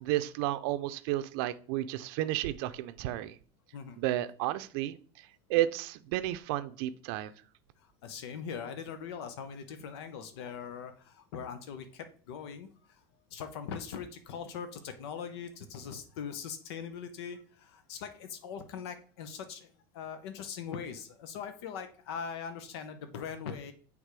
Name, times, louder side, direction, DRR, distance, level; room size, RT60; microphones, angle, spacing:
voice 1, 0.0-3.4 4.0-5.0 5.5-7.3, right 14 dB, 70° right, 11 dB, 0.5 m, -32 dB
voice 2, 7.8-13.0 13.3-19.7 19.9-23.7, left 7 dB, 85° left, 9 dB, 0.8 m, -41 dB
8.3 x 3.5 x 4.7 m, 0.42 s
supercardioid pair, 135°, 13 cm